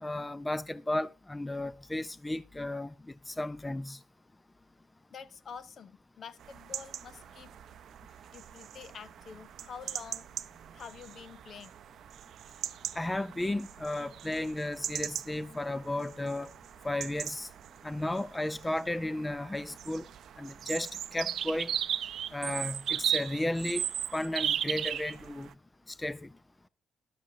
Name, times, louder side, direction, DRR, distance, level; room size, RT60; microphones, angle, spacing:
voice 1, 0.0-2.9 3.3-4.0 13.0-16.5 16.8-17.5 17.8-20.0 20.4-21.7 22.3-23.8 24.1-25.5 26.0-26.3, left 1 dB, 15° left, 0.5 m, -34 dB
voice 2, 5.1-7.5 8.1-11.8, left 6 dB, 55° left, 0.7 m, -48 dB
sound 1, 6.4-25.5, right 10 dB, 70° right, 0.5 m, -38 dB
13.5 x 12.0 x 2.7 m
cardioid pair, 90°, 0 cm